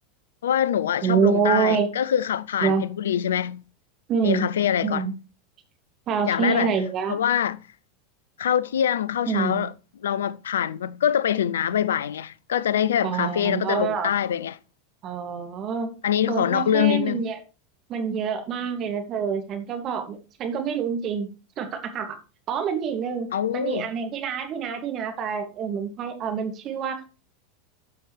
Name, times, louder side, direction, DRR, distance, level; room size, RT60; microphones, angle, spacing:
voice 1, 0.4-3.6 4.2-5.0 6.3-6.7 7.1-7.6 8.4-9.7 10.0-14.6 16.0-17.2 23.3-23.9, left 9 dB, 75° left, 0.5 m, -24 dB
voice 2, 1.0-1.9 2.6-2.8 4.1-4.5 4.8-5.1 6.1-7.2 9.3-9.6 13.0-14.1 15.0-15.9 16.3-17.4 17.9-21.3 21.6-22.1 22.5-27.1, right 6 dB, 40° right, 2.3 m, -26 dB
13.0 x 5.9 x 3.3 m
hypercardioid pair, 85°, 0 cm